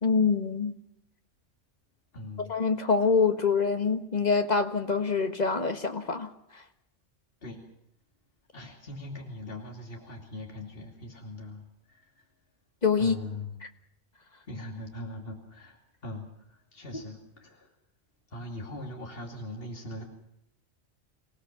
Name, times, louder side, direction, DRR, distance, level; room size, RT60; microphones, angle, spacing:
voice 1, 0.0-0.7 2.5-6.3 12.8-13.2, left 5 dB, 40° left, 1.6 m, -25 dB
voice 2, 2.1-2.5 7.4-7.6 8.5-12.2 13.0-13.5 14.5-17.7 18.3-20.0, left 1 dB, 55° left, 2.9 m, -41 dB
26.0 x 17.5 x 7.3 m
omnidirectional pair, 1.2 m